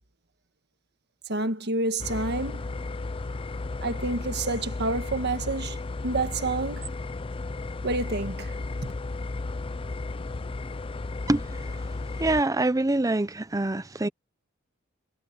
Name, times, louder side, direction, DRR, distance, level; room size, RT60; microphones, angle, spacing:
voice 1, 1.3-2.6 3.8-5.8 6.0-6.9 7.8-8.5 8.8-8.9, right 2 dB, 55° right, 1.6 m, -28 dB
sound 1, 2.0-12.4, left 3 dB, 25° left, 0.5 m, -34 dB
voice 2, 12.2-14.1, right 2 dB, 15° right, 0.7 m, -25 dB
head